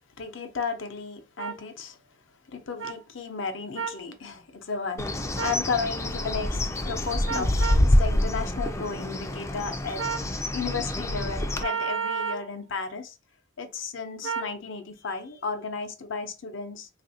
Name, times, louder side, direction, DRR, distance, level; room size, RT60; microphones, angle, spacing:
voice 1, 0.2-2.0 2.5-7.5 7.8-13.2 13.6-16.9, left 5 dB, 70° left, 0.6 m, -34 dB
sound 1, 1.4-1.5 2.8-2.9 3.8-4.0 5.4-5.6 7.3-7.9 10.0-10.3 11.6-12.5 14.2-14.5, right 6 dB, 65° right, 0.6 m, -31 dB
Bird, 5.0-11.6, left 1 dB, 15° left, 0.3 m, -26 dB
3.4 x 2.4 x 2.7 m
head